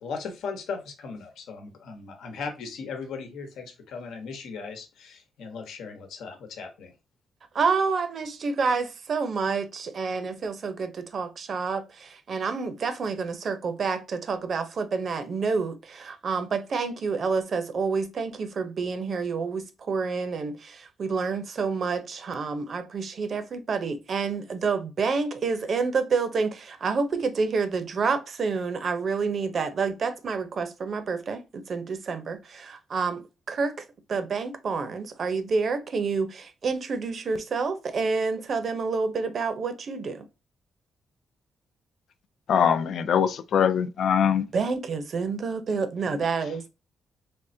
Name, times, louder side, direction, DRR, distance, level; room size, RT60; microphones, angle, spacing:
voice 1, 0.0-6.9, left 5 dB, 85° left, 1.0 m, -37 dB
voice 2, 7.5-33.8 34.1-40.3 44.5-46.7, right 4 dB, 45° right, 0.6 m, -28 dB
voice 3, 42.5-44.5, left 8 dB, 60° left, 0.3 m, -22 dB
3.5 x 3.2 x 2.7 m
cardioid pair, 140°, 0 cm